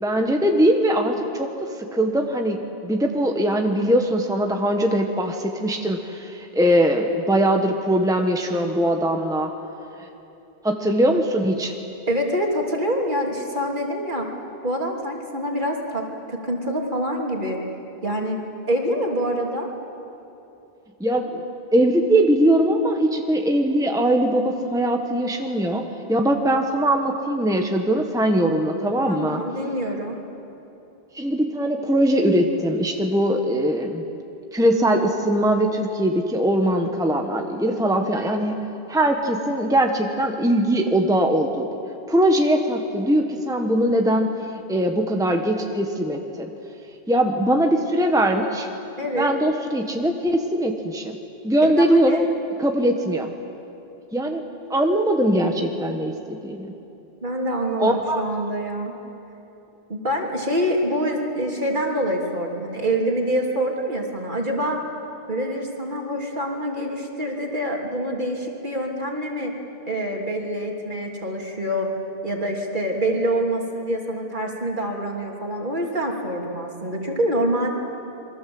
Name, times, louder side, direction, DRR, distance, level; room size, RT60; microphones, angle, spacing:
voice 1, 0.0-9.5 10.6-11.7 21.0-21.4 21.7-29.4 31.1-34.0 34.5-38.6 38.9-41.7 42.1-44.3 44.7-46.5 47.1-48.7 49.2-51.2 51.4-52.3 52.6-53.3 54.1-54.4 54.7-56.7 57.8-58.2, right 1 dB, 5° right, 3 dB, 1.4 m, -21 dB
voice 2, 12.1-14.3 14.6-17.6 18.0-18.4 18.7-19.7 29.0-30.2 49.0-49.3 51.7-52.2 57.2-58.9 59.9-64.8 65.3-69.5 69.9-71.9 72.2-77.7, equal, 50° right, 0 dB, 3.2 m, -26 dB
28.0 x 23.5 x 7.9 m, 2.9 s
omnidirectional pair, 1.1 m